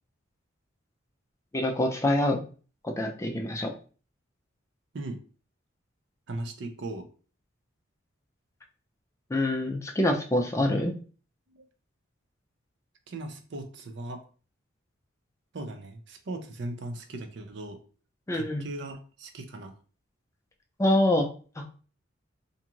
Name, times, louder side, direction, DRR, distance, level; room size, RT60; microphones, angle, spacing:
voice 1, 1.5-2.4 2.8-3.7 9.3-10.9 18.3-18.7 20.8-21.3 21.6-21.7, left 1 dB, 15° left, 3 dB, 0.3 m, -25 dB
voice 2, 6.3-7.1 11.5-11.7 13.1-14.2 15.5-17.8 18.3-19.7, right 2 dB, 60° right, 6 dB, 0.5 m, -38 dB
2.6 x 2.3 x 2.9 m, 0.39 s
head